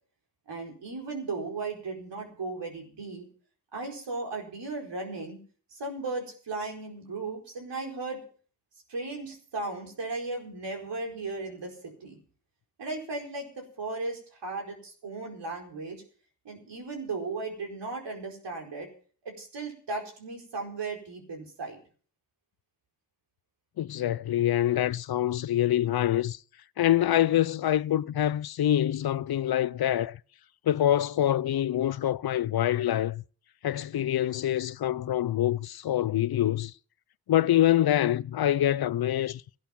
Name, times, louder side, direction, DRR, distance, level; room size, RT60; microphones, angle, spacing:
voice 1, 0.5-3.3 3.7-5.4 5.7-8.2 8.9-12.2 12.8-16.0 16.4-18.9 19.2-21.8, right 3 dB, 75° right, 4.8 m, -36 dB
voice 2, 23.8-26.4 26.8-30.2 30.7-33.2 33.6-36.7 37.3-39.4, left 12 dB, 60° left, 0.6 m, -25 dB
14.0 x 11.5 x 5.8 m
cardioid pair, 45°, 42 cm